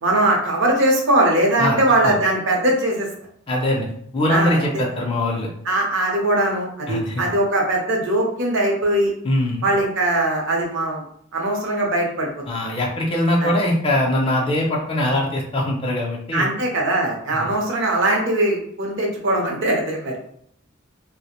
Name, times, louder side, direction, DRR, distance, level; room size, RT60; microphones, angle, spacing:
voice 1, 0.0-3.1 4.3-4.8 5.7-9.1 9.6-11.0 11.3-12.3 13.4-13.5 16.3-20.2, right 1 dB, 60° right, 0 dB, 0.7 m, -20 dB
voice 2, 3.5-3.9 4.1-5.5 6.9-7.2 9.2-9.6 12.5-16.5 17.4-17.5, left 1 dB, 25° left, -2 dB, 0.4 m, -22 dB
2.4 x 2.0 x 2.8 m, 0.66 s
head